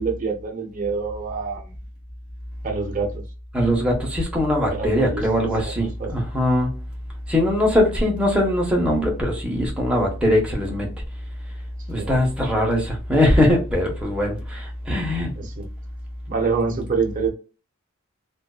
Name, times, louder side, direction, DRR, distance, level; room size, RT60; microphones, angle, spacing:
voice 1, 0.0-1.7 2.6-3.2 4.7-6.1 12.0-12.1 15.3-15.7 16.3-17.3, right 4 dB, 35° right, 0.5 m, -26 dB
voice 2, 3.5-6.7 7.3-10.9 11.9-15.3, left 1 dB, 5° right, 0.8 m, -21 dB
2.5 x 2.3 x 2.3 m
head